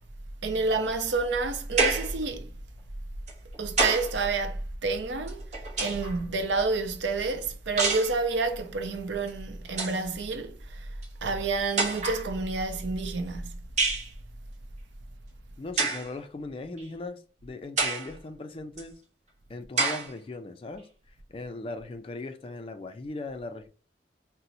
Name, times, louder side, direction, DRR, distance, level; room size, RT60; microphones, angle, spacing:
voice 1, 0.4-2.5 3.6-5.4 5.8-10.9 11.2-13.6, right 3 dB, 85° right, 0.5 m, -29 dB
sound 1, 1.8-2.2 3.3-4.2 5.3-6.2 7.8-8.2 9.3-9.4 9.7-10.0 11.0-11.1 11.8-12.3 13.8-14.1 15.8-16.1 16.8-16.9 17.8-18.1 18.8-18.9 19.8-20.1, right 3 dB, 40° right, 0.7 m, -27 dB
voice 2, 15.6-18.9 19.5-20.9 21.3-23.7, left 2 dB, 30° left, 0.3 m, -38 dB
4.1 x 2.0 x 2.5 m
head